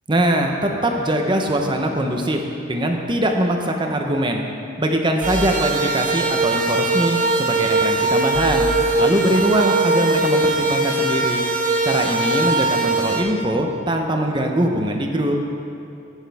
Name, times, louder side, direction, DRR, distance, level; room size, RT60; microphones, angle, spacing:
voice 1, 0.1-4.4 4.8-8.7 9.0-11.4 11.8-15.4, right 1 dB, 25° right, 3 dB, 0.9 m, -22 dB
sound 1, 5.2-13.2, right 2 dB, 45° right, 1.4 m, -20 dB
17.0 x 6.4 x 3.5 m, 2.8 s
head